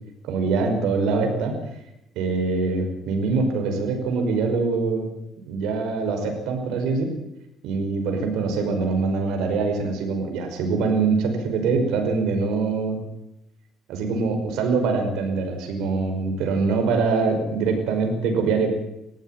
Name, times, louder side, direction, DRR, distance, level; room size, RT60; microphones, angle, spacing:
voice 1, 0.2-1.6 2.2-5.1 5.4-7.2 7.6-13.0 13.9-18.7, right 4 dB, 85° right, 4 dB, 5.4 m, -24 dB
19.5 x 14.5 x 9.0 m, 0.85 s
cardioid pair, 135°, 0 cm